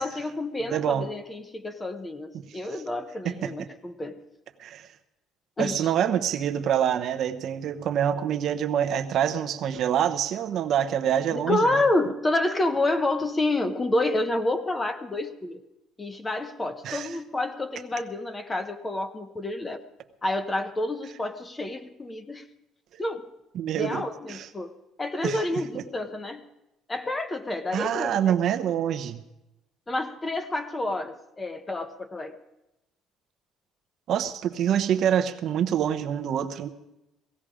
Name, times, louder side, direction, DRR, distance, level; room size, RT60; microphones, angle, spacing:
voice 1, 0.0-4.2 5.6-5.9 11.3-15.6 16.0-19.8 20.2-22.4 23.0-23.3 23.8-24.7 25.0-26.4 26.9-28.3 29.9-32.4, left 2 dB, 15° left, 10 dB, 0.9 m, -29 dB
voice 2, 0.7-1.1 3.2-3.7 4.6-4.9 5.6-11.8 16.8-17.1 23.5-24.0 24.3-24.5 25.2-25.4 25.7-25.8 27.7-29.2 34.1-36.7, right 9 dB, 55° right, 8 dB, 0.9 m, -26 dB
17.5 x 15.5 x 5.0 m, 0.92 s
cardioid pair, 150°, 0 cm